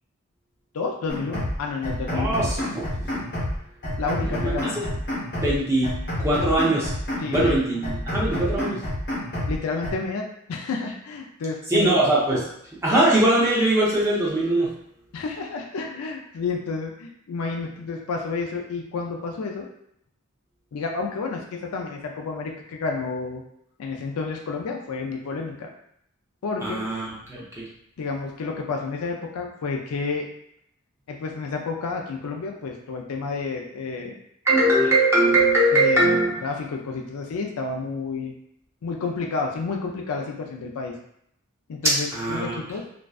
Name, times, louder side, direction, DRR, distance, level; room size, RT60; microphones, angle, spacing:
voice 1, 0.7-2.4 4.0-4.8 7.2-7.6 9.5-11.9 15.1-19.7 20.7-23.4 23.8-25.7 26.4-26.8 28.0-30.2 31.1-34.2 34.8-34.9 35.7-38.3 38.8-41.0 41.7-42.8, left 4 dB, 75° left, 1 dB, 0.4 m, -30 dB
sound 1, 1.1-1.6 1.8-3.6 3.8-5.6 5.8-7.6 7.8-9.6 9.8-9.9, left 1 dB, 50° left, 1.0 m, -28 dB
voice 2, 2.1-3.1 4.2-4.9 5.4-5.9 6.2-6.9 7.3-8.8 11.7-12.5 12.8-14.7 26.6-27.6 34.5-36.4 42.1-42.6, right 1 dB, 15° right, -7 dB, 0.6 m, -21 dB
2.5 x 2.2 x 2.3 m, 0.73 s
head